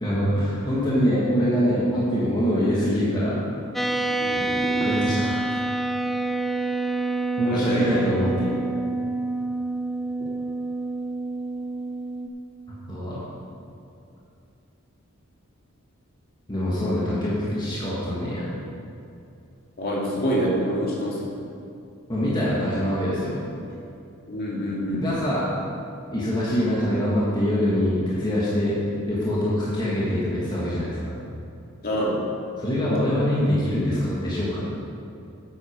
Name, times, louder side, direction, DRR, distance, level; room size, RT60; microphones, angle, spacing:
voice 1, 0.0-3.4 4.8-5.3 7.4-8.6 12.9-13.2 16.5-18.5 22.1-23.4 25.0-25.5 26.1-28.8 29.1-31.1 32.6-34.8, equal, 20° left, -8 dB, 1.8 m, -24 dB
sound 1, 3.7-12.3, right 2 dB, ahead, 0.3 m, -27 dB
voice 2, 4.2-4.8 7.5-7.9 19.8-21.3 24.3-25.1 31.8-32.2, equal, 45° left, -5 dB, 2.5 m, -26 dB
9.4 x 8.3 x 5.2 m, 2.6 s
head